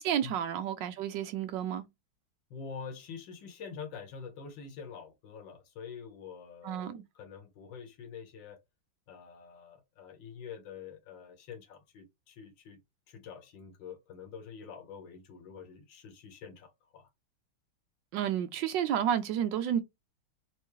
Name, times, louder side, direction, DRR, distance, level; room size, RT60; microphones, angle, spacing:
voice 1, 0.0-1.9 6.6-7.0 18.1-19.8, right 9 dB, 70° right, 1.2 m, -31 dB
voice 2, 2.5-8.6 9.1-12.8 13.1-17.1, left 6 dB, 65° left, 1.7 m, -46 dB
4.6 x 2.6 x 3.1 m
omnidirectional pair, 2.2 m